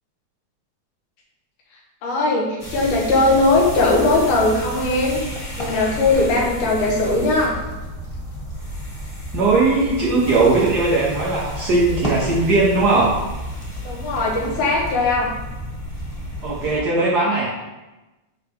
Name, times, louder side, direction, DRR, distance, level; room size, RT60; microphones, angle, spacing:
voice 1, 2.0-5.2 5.6-7.6 13.8-15.3, left 2 dB, 85° left, -3 dB, 2.7 m, -19 dB
sound 1, 2.6-16.8, equal, 15° left, 1.2 m, -31 dB
voice 2, 9.3-13.1 16.4-17.5, right 3 dB, 80° right, -5 dB, 0.9 m, -18 dB
10.0 x 3.4 x 3.5 m, 1.1 s
omnidirectional pair, 3.4 m